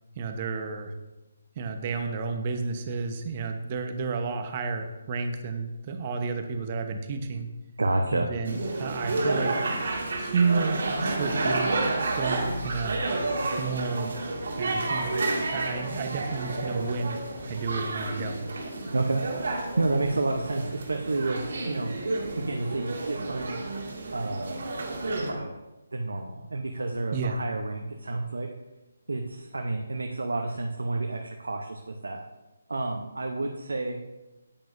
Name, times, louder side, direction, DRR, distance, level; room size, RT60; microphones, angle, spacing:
voice 1, 0.2-0.9 1.6-7.5 8.1-9.5 10.2-11.8 12.2-13.0 13.6-14.1 14.5-15.1 15.5-17.2 17.4-18.5 27.1-27.4, right 4 dB, 35° right, 6 dB, 1.0 m, -31 dB
voice 2, 7.8-8.3 18.8-21.9 22.4-23.6 24.1-24.6 25.2-25.5 25.9-28.5 29.1-32.2 32.7-34.0, right 2 dB, 80° right, 2 dB, 0.8 m, -30 dB
sound 1, 8.4-25.3, right 2 dB, 60° right, 1.9 m, -30 dB
10.0 x 8.8 x 2.6 m, 1.1 s
figure-of-eight pair, 150°, 0 cm